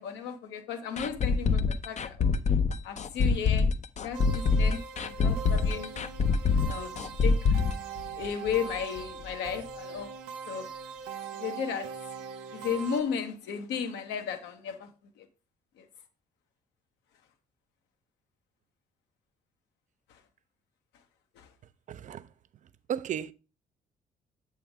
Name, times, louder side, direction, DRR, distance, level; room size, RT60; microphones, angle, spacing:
voice 1, 0.0-2.4 2.8-3.7 4.0-4.8 5.1-5.9 6.7-7.6 8.2-10.1 10.5-10.7 11.3-11.9 12.5-14.9 15.2-15.3 15.8-15.9 20.1-20.2 21.4-21.5, left 7 dB, 70° left, 1.1 m, -34 dB
sound 1, 1.0-8.7 9.0-9.1 9.5-9.6, left 4 dB, 40° left, 0.6 m, -25 dB
sound 2, 4.1-13.0, right 6 dB, 70° right, 0.9 m, -41 dB
voice 2, 21.9-22.2 22.9-23.3, right 9 dB, 40° right, 0.5 m, -33 dB
7.8 x 3.4 x 4.7 m
hypercardioid pair, 45°, 19 cm